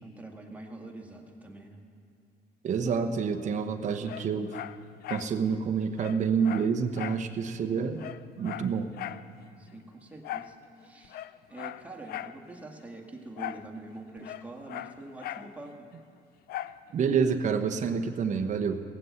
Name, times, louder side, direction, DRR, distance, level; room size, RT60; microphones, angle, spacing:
voice 1, 0.0-1.8 9.6-11.2 11.5-15.9, right 2 dB, 10° right, 1 dB, 1.8 m, -45 dB
voice 2, 2.6-4.6 5.1-8.0 8.4-8.9 16.9-18.8, right 6 dB, 45° right, 5 dB, 0.9 m, -28 dB
Dog, 4.0-5.3 5.6-5.7 6.0-7.3 7.6-7.7 8.0-9.3 10.2-10.6 11.0-12.4 13.4-13.7 14.0-15.5 16.5-16.8 17.3-17.4, left 13 dB, 65° left, 0.5 m, -39 dB
18.0 x 7.7 x 8.1 m, 2.5 s
cardioid pair, 110°, 17 cm